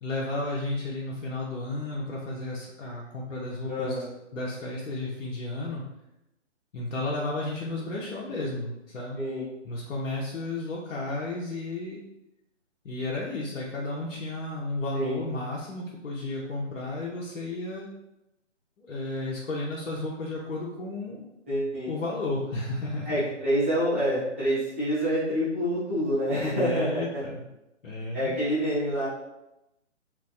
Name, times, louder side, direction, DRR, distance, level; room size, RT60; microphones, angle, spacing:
voice 1, 0.0-4.1 4.3-5.8 6.7-9.2 9.6-12.0 12.8-17.9 18.8-21.3 21.9-23.2 26.5-27.5 27.8-28.3, left 2 dB, 85° left, -5 dB, 0.7 m, -33 dB
voice 2, 3.7-4.1 9.1-9.4 14.9-15.2 21.5-21.9 23.0-27.2 28.1-29.1, equal, 10° right, -12 dB, 0.4 m, -27 dB
3.3 x 2.0 x 2.4 m, 0.90 s
hypercardioid pair, 150°, 37 cm